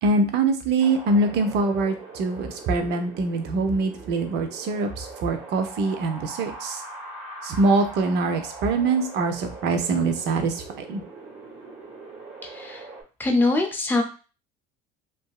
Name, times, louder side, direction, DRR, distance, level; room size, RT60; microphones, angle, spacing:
voice 1, 0.0-6.8 7.4-11.0, right 3 dB, 55° right, 6 dB, 0.7 m, -24 dB
Wind, 0.8-13.0, right 3 dB, 35° right, 1.5 m, -41 dB
voice 2, 12.4-12.8 13.2-14.0, left 2 dB, 10° left, 3 dB, 0.6 m, -23 dB
2.8 x 2.5 x 2.3 m, 0.33 s
supercardioid pair, 105°, 20 cm